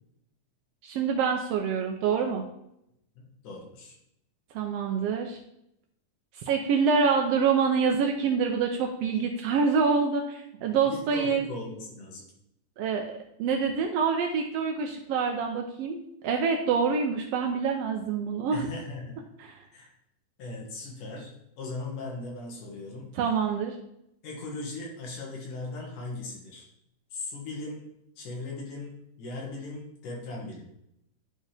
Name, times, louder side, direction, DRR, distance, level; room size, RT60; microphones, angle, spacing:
voice 1, 0.8-2.4 4.5-5.4 6.4-11.5 12.8-13.1 13.4-16.0 16.2-18.7 19.5-19.6 23.1-23.8, right 5 dB, 85° right, 2 dB, 1.4 m, -26 dB
voice 2, 3.2-4.0 10.6-12.2 18.5-19.2 19.7-19.9 20.4-21.3 21.6-23.1 24.2-26.7 27.1-30.7, left 2 dB, 90° left, -2 dB, 3.3 m, -38 dB
9.6 x 4.6 x 3.4 m, 0.79 s
omnidirectional pair, 3.5 m